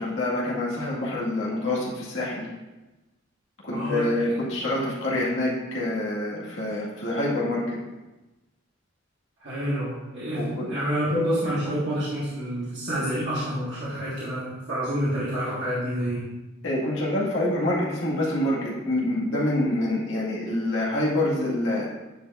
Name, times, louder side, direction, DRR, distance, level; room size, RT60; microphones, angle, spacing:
voice 1, 0.0-2.5 3.6-7.8 10.3-10.7 16.6-21.9, left 1 dB, 70° left, -5 dB, 2.0 m, -26 dB
voice 2, 3.7-4.3 9.4-16.3, equal, 60° right, -10 dB, 1.7 m, -28 dB
9.9 x 4.5 x 2.6 m, 1.1 s
head